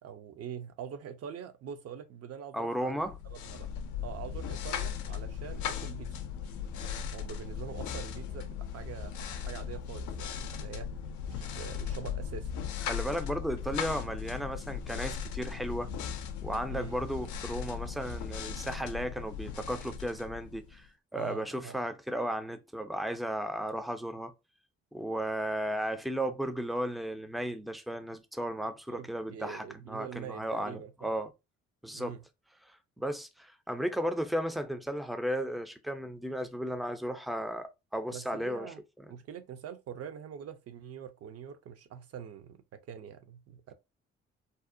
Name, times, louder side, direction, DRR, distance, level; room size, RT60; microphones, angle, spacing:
voice 1, 0.0-3.7 4.0-6.3 7.1-9.1 9.5-10.9 11.3-12.5 16.7-17.0 21.1-21.8 28.9-31.1 31.9-32.2 38.1-38.8 39.1-43.7, right 8 dB, 55° right, 0.5 m, -44 dB
voice 2, 2.5-3.2 12.8-15.9 16.4-24.3 24.9-31.3 31.8-32.2 32.6-39.1, equal, ahead, 0.4 m, -35 dB
sound 1, 3.0-20.9, left 7 dB, 70° left, 0.4 m, -38 dB
2.6 x 2.0 x 2.5 m
hypercardioid pair, 50°, 30 cm